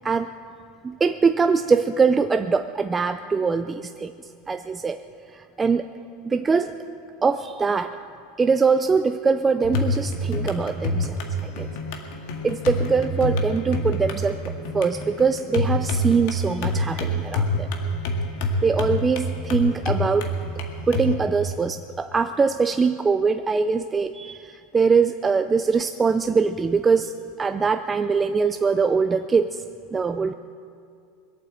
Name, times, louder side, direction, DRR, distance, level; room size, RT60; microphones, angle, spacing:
voice 1, 0.8-5.0 5.3-5.9 6.3-6.7 7.2-7.9 8.4-11.7 12.4-17.7 18.6-20.3 20.9-27.1 27.4-29.6 29.9-30.3, right 5 dB, 15° right, 8 dB, 0.4 m, -22 dB
sound 1, 9.6-21.1, left 1 dB, 65° left, 2.0 m, -27 dB
21.0 x 8.6 x 7.7 m, 2.3 s
supercardioid pair, 135°, 0 cm